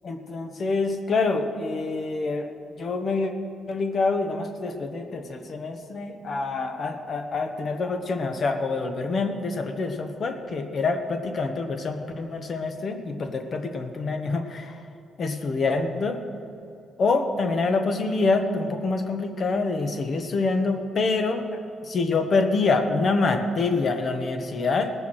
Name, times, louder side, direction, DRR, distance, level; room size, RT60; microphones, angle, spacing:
voice 1, 0.0-3.3 3.7-14.9 15.2-16.2 17.0-24.9, left 3 dB, 50° left, 5 dB, 1.2 m, -26 dB
19.0 x 7.0 x 6.3 m, 2.6 s
cardioid pair, 90°, 0 cm